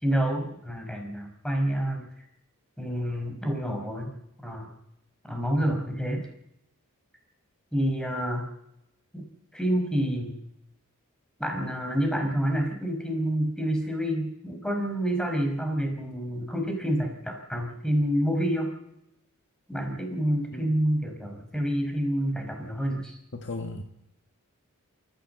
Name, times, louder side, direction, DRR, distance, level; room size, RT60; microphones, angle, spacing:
voice 1, 0.0-2.1 2.8-4.1 4.4-4.7 5.2-6.3 7.7-8.5 9.1-10.4 11.4-18.7 19.7-23.2, equal, 5° left, 3 dB, 5.0 m, -28 dB
voice 2, 23.3-23.8, left 2 dB, 55° left, 4 dB, 1.7 m, -35 dB
28.0 x 15.0 x 7.9 m, 0.84 s
head